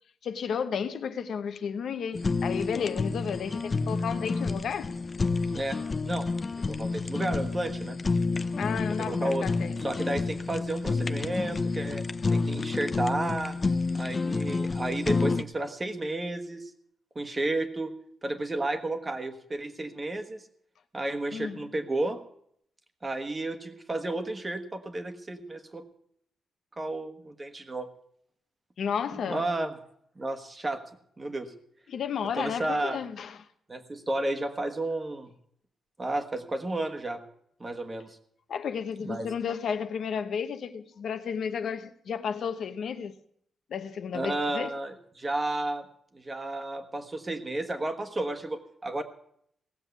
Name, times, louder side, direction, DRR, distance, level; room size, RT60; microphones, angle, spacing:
voice 1, 0.2-4.9 8.6-9.8 21.3-21.7 28.8-29.5 31.9-33.5 38.5-43.1 43.7-44.7, left 7 dB, 65° left, 0.9 m, -32 dB
Fire, 2.1-15.4, left 3 dB, 30° left, 0.6 m, -29 dB
voice 2, 6.7-8.0 9.0-9.5 9.8-12.0 12.3-13.6 13.9-16.7 17.1-17.9 18.2-20.4 20.9-22.2 23.0-25.8 26.8-27.9 29.3-29.7 30.2-30.8 31.2-31.5 32.3-33.0 33.7-35.3 36.0-37.2 37.6-38.2 39.0-39.3 44.1-45.9 46.1-49.0, right 2 dB, 20° right, 1.4 m, -32 dB
17.0 x 7.4 x 8.1 m
wide cardioid pair, 150°, 0 cm